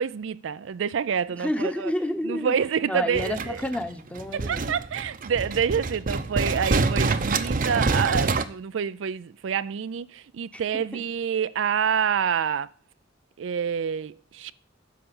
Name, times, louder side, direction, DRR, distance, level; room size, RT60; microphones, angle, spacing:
voice 1, 0.0-1.9 2.3-3.6 4.3-12.7 13.4-14.5, right 7 dB, 70° right, 0.4 m, -27 dB
voice 2, 1.3-2.6 2.8-4.6 10.5-11.0, left 1 dB, 5° left, 1.0 m, -30 dB
sound 1, 3.1-8.4, right 3 dB, 45° right, 0.7 m, -26 dB
10.0 x 6.7 x 7.0 m
head